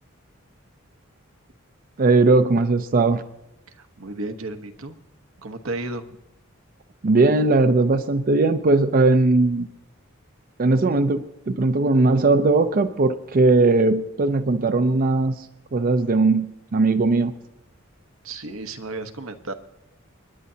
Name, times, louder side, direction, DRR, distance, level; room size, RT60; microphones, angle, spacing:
voice 1, 2.0-3.2 7.0-9.7 10.6-17.3, right 3 dB, 45° right, 9 dB, 0.5 m, -19 dB
voice 2, 3.7-5.0 5.4-6.1 18.2-19.5, right 2 dB, 85° right, 7 dB, 1.1 m, -33 dB
29.5 x 10.0 x 2.8 m, 0.91 s
head